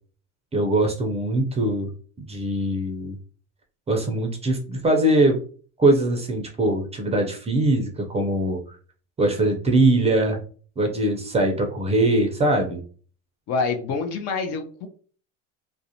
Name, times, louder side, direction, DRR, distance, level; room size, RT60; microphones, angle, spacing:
voice 1, 0.5-1.9 2.3-3.2 3.9-5.4 5.8-8.6 9.2-10.4 10.8-12.8, right 1 dB, 15° right, 3 dB, 0.5 m, -21 dB
voice 2, 13.5-14.9, left 4 dB, 45° left, 6 dB, 0.6 m, -26 dB
2.4 x 2.1 x 2.7 m, 0.41 s
supercardioid pair, 105°, 36 cm